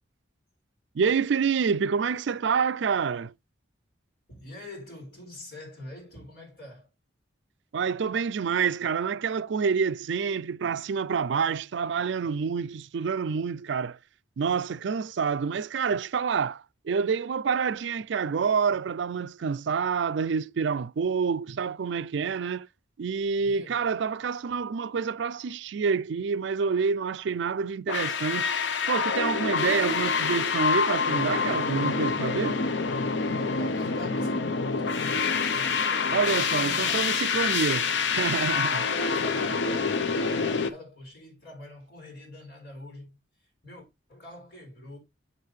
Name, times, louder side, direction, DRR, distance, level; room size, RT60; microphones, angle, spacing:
voice 1, 0.9-3.3 7.7-14.0 14.4-22.7 23.0-28.5 28.9-32.6 36.1-38.9, right 6 dB, 70° right, 0.4 m, -27 dB
voice 2, 4.3-6.9 23.4-23.9 33.6-35.4 36.2-37.1 38.8-43.2 43.6-45.0, left 1 dB, 50° left, 4.3 m, -44 dB
sound 1, 27.9-40.7, left 5 dB, 70° left, 0.7 m, -27 dB
7.2 x 6.5 x 3.2 m
head